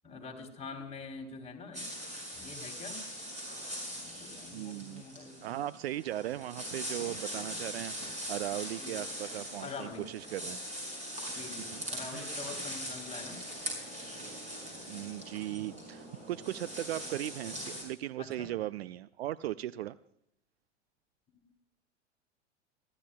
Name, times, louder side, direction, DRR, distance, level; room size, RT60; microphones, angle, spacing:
voice 1, 0.0-1.9 2.3-3.0 3.8-5.6 7.4-7.6 8.8-9.0 9.6-10.1 11.3-13.4 18.2-18.5 21.3-21.4, left 4 dB, 15° left, 2 dB, 3.1 m, -45 dB
sound 1, 1.7-17.8, equal, 20° right, 6.4 m, -41 dB
voice 2, 4.5-5.0 5.4-10.6 11.4-11.7 12.0-12.3 14.9-20.0, right 14 dB, 60° right, 17 dB, 0.5 m, -38 dB
30.0 x 12.5 x 2.2 m, 0.78 s
figure-of-eight pair, 90°, 36 cm